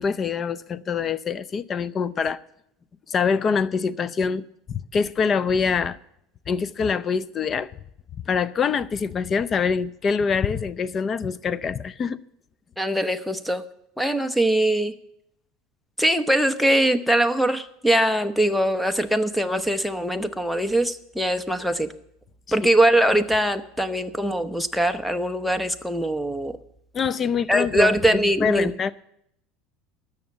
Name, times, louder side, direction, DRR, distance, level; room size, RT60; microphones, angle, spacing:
voice 1, 0.0-2.4 3.1-6.0 6.5-7.7 8.3-12.2 26.9-28.9, left 6 dB, 35° left, 0.6 m, -25 dB
voice 2, 12.8-13.6 14.0-14.9 16.0-21.9 22.5-26.5 27.5-28.7, right 1 dB, ahead, 0.9 m, -22 dB
13.0 x 6.5 x 9.6 m
supercardioid pair, 110°, 0 cm